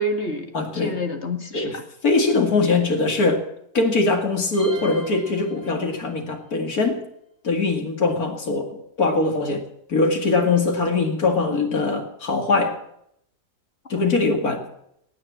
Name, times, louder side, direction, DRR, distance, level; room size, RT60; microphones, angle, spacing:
voice 1, 0.0-1.8 13.9-14.2, equal, 45° left, 5 dB, 2.0 m, -28 dB
voice 2, 0.5-0.9 1.5-1.8 2.0-3.5 3.7-7.0 7.4-9.6 9.9-12.8 13.9-14.6, left 3 dB, 65° left, 3 dB, 2.7 m, -22 dB
sound 1, 4.5-6.4, right 1 dB, 50° right, 6.2 m, -39 dB
17.5 x 9.9 x 7.5 m, 0.76 s
omnidirectional pair, 1.7 m